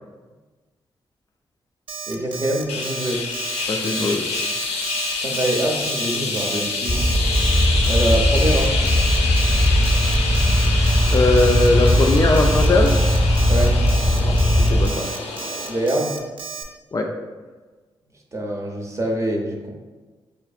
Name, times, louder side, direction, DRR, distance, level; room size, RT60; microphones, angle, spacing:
Alarm, 1.9-16.6, right 6 dB, 55° right, 0.4 m, -33 dB
voice 1, 2.1-3.3 5.2-7.0 7.9-8.7 13.5-13.8 15.7-16.1 18.3-19.7, right 1 dB, 30° right, 0 dB, 0.8 m, -24 dB
sound 1, 2.7-16.0, left 3 dB, 85° left, 0.5 m, -27 dB
voice 2, 3.7-4.4 11.1-13.0 14.2-15.1 16.9-17.1, left 2 dB, 35° left, 2 dB, 0.4 m, -20 dB
sound 2, 6.9-14.9, equal, ahead, 0.9 m, -18 dB
4.5 x 2.4 x 2.4 m, 1.3 s
supercardioid pair, 50°, 10 cm